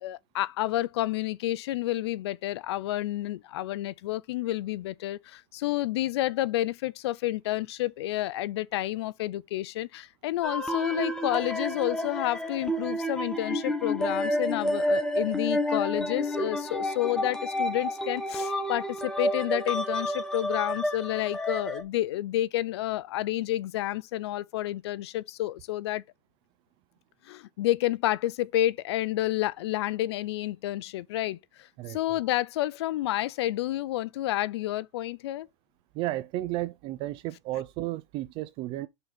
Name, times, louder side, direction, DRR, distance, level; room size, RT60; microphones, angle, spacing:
voice 1, 0.0-26.0 27.2-35.5, left 15 dB, 60° left, 0.5 m, -30 dB
sound 1, 10.4-21.8, equal, 5° left, 1.1 m, -30 dB
voice 2, 31.8-32.2 35.9-38.9, right 16 dB, 35° right, 0.4 m, -33 dB
5.7 x 4.0 x 5.1 m
hypercardioid pair, 140°, 15 cm